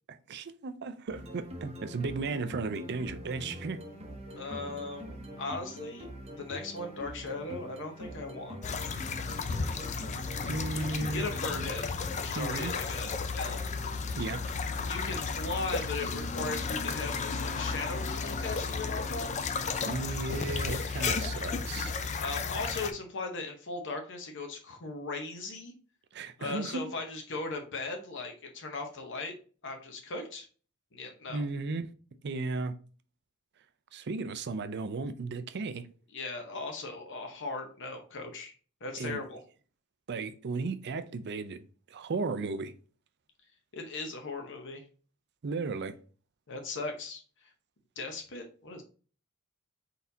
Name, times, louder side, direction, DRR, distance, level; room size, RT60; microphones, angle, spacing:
voice 1, 0.3-3.8 10.5-11.7 12.4-12.7 14.2-14.4 19.8-21.9 26.1-26.9 31.3-31.9 32.2-32.7 33.9-35.9 39.0-39.2 40.1-41.6 41.9-42.7 45.4-45.9, right 3 dB, 50° right, 0.4 m, -35 dB
sound 1, 1.1-13.0, equal, 30° right, 0.8 m, -44 dB
voice 2, 4.3-8.6 10.9-12.0 12.2-13.6 14.8-19.5 22.2-25.7 26.4-29.3 29.6-30.5 30.9-31.5 36.1-38.5 38.8-39.4 43.7-44.8 46.5-47.5 48.0-48.8, left 3 dB, 55° left, 0.8 m, -38 dB
sound 2, 8.6-22.9, left 4 dB, 30° left, 0.4 m, -33 dB
4.1 x 4.1 x 2.7 m
head